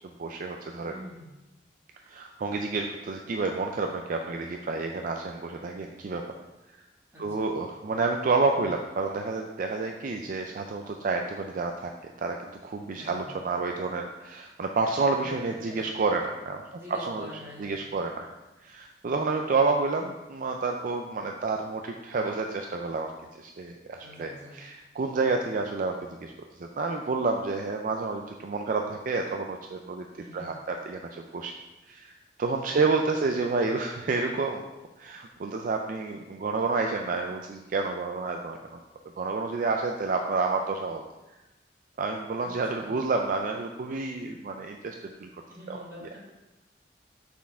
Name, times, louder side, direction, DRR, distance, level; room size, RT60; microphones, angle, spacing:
voice 1, 0.0-0.9 2.1-6.2 7.2-11.9 12.2-12.4 12.6-16.6 16.9-17.3 17.6-18.3 18.6-23.1 23.4-26.3 26.8-30.1 30.3-31.5 31.9-34.6 35.0-38.8 39.2-41.1 42.0-45.3 45.7-45.8, right 3 dB, 50° right, 3 dB, 0.4 m, -29 dB
voice 2, 0.8-1.2 7.1-7.5 12.9-13.3 15.2-15.3 15.7-15.8 16.7-17.8 24.0-24.6 30.2-30.5 32.6-33.0 42.4-42.9 45.5-46.2, left 1 dB, 15° right, -8 dB, 2.1 m, -46 dB
5.8 x 4.3 x 4.3 m, 1.0 s
head